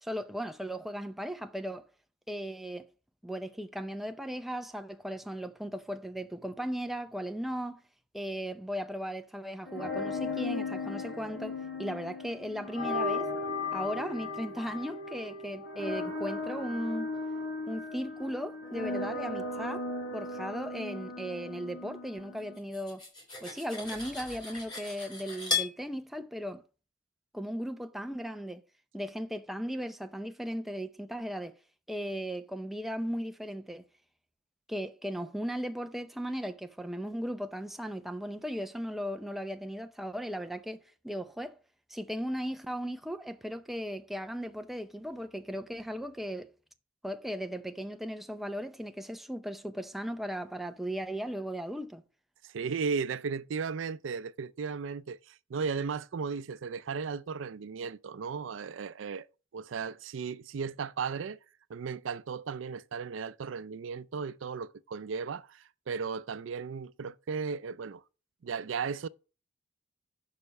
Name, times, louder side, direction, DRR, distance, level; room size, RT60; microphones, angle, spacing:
voice 1, 0.0-1.8 2.3-2.9 3.2-7.8 8.1-11.5 11.8-13.3 13.7-17.1 17.7-19.9 20.1-23.1 23.4-26.6 27.3-28.6 28.9-31.5 31.9-33.8 34.7-40.8 41.0-41.5 41.9-46.5 47.0-52.0, equal, ahead, 0.6 m, -37 dB
sound 1, 9.6-22.6, left 3 dB, 70° left, 1.9 m, -36 dB
Cutlery silverware, 22.6-25.8, left 5 dB, 25° left, 3.2 m, -36 dB
voice 2, 52.4-59.3 59.5-61.4 61.7-68.0 68.4-69.1, right 5 dB, 85° right, 0.4 m, -35 dB
6.7 x 5.6 x 5.2 m
head